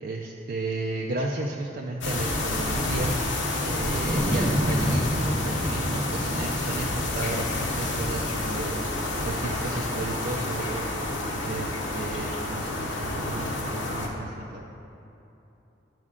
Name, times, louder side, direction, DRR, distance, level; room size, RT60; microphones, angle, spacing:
voice 1, 0.0-3.2 3.7-8.8 9.2-10.8 11.4-14.8, right 2 dB, 55° right, -1 dB, 0.5 m, -33 dB
sound 1, 2.0-14.1, left 2 dB, 85° left, 1.1 m, -29 dB
Wind, 3.8-10.3, equal, 20° right, 0.9 m, -31 dB
11.0 x 5.3 x 3.7 m, 2.9 s
head